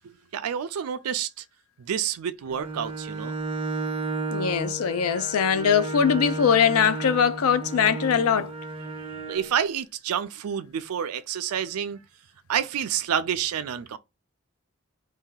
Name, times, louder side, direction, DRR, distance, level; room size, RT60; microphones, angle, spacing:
voice 1, 0.0-1.4 1.8-3.4 9.1-12.0 12.5-14.0, right 8 dB, 90° right, 0.4 m, -29 dB
Bowed string instrument, 2.5-9.5, right 3 dB, 25° right, 0.4 m, -33 dB
voice 2, 4.3-8.5, left 7 dB, 80° left, 0.4 m, -22 dB
2.7 x 2.3 x 3.7 m
head